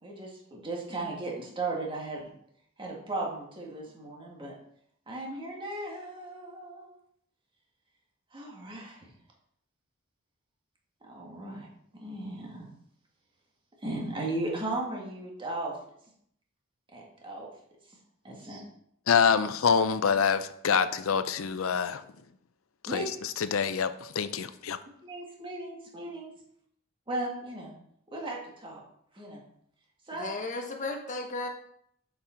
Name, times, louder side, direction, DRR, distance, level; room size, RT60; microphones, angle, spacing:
voice 1, 0.0-2.3 2.8-4.5 5.1-6.9 8.3-9.1 11.0-11.7 12.0-12.7 13.8-15.7 16.9-17.5 18.2-18.6 22.9-23.0 25.0-26.3 27.1-27.7 28.1-28.8 29.1-29.4 30.1-30.3, right 2 dB, 25° right, -2 dB, 1.7 m, -36 dB
voice 2, 19.1-22.0 22.8-24.8, left 6 dB, 75° left, 12 dB, 0.5 m, -26 dB
voice 3, 30.1-31.5, left 2 dB, 40° left, 2 dB, 1.2 m, -34 dB
7.0 x 5.3 x 4.4 m, 0.69 s
head